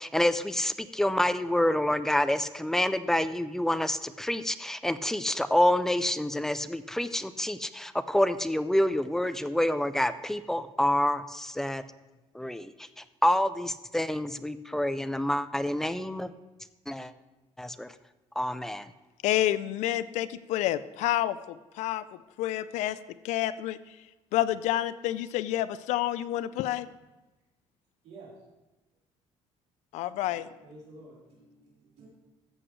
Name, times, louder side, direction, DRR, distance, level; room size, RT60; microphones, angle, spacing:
voice 1, 0.0-11.8 12.3-12.9 13.2-16.3 16.9-17.1 17.6-17.9 18.4-18.9, left 1 dB, 5° left, 12 dB, 0.3 m, -27 dB
voice 2, 19.2-22.0 22.4-23.0 23.2-23.8 24.3-26.9 29.9-30.5, left 13 dB, 80° left, 15 dB, 0.4 m, -29 dB
voice 3, 28.0-28.4 30.2-32.1, right 2 dB, 65° right, -6 dB, 3.8 m, -51 dB
14.0 x 7.8 x 3.2 m, 1.1 s
cardioid pair, 150°, 12 cm